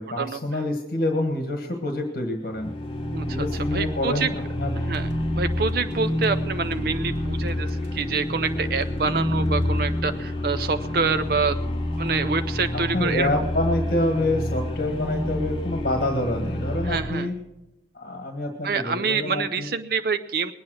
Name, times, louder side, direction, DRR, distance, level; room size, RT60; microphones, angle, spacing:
voice 1, 0.0-2.7 3.3-4.7 12.7-17.3 17.9-19.7, left 1 dB, 50° left, 3 dB, 1.5 m, -27 dB
sound 1, 2.5-17.3, left 1 dB, 30° left, 1.3 m, -28 dB
voice 2, 3.1-4.3 4.7-11.6 12.0-13.5 16.8-17.3 18.6-20.5, right 4 dB, 55° right, 9 dB, 0.5 m, -26 dB
sound 2, 4.9-6.3 6.7-9.8, equal, 90° right, 3.2 m, -49 dB
21.0 x 8.7 x 6.3 m, 0.96 s
head